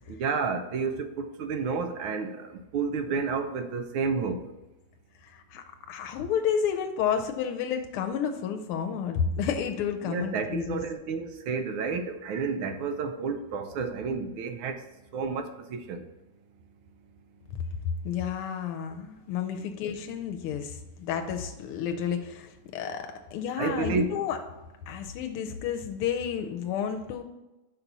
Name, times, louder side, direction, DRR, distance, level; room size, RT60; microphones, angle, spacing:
voice 1, 0.1-4.5 10.0-14.8 15.1-16.1 19.6-19.7 23.6-24.2, right 5 dB, 75° right, 8 dB, 1.4 m, -31 dB
voice 2, 5.2-10.8 17.5-17.6 18.0-24.4 24.9-27.2, left 8 dB, 80° left, 5 dB, 1.5 m, -31 dB
5.7 x 4.0 x 5.9 m, 1.0 s
omnidirectional pair, 2.4 m